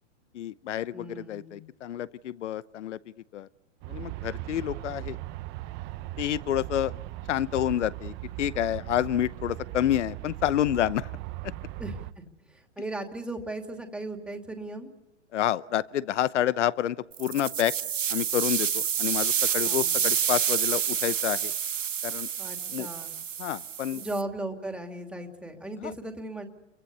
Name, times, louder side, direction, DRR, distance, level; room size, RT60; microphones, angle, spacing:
voice 1, 0.3-3.0 3.3-3.5 3.9-5.2 6.2-6.9 7.3-11.1 11.4-11.5 15.3-17.7 18.1-21.5 22.0-22.3 22.7-22.9 23.4-24.0 25.8-25.9, left 11 dB, 70° left, 18 dB, 0.9 m, -29 dB
voice 2, 0.9-1.6 11.8-12.2 12.5-14.9 19.6-20.0 22.3-23.1 23.9-26.5, right 2 dB, 5° right, 4 dB, 2.6 m, -37 dB
Aircraft, 3.8-12.1, right 17 dB, 30° right, 0.9 m, -38 dB
sound 1, 17.1-24.2, right 8 dB, 90° right, 1.4 m, -28 dB
29.5 x 24.0 x 7.0 m, 1.1 s
hypercardioid pair, 130°, 37 cm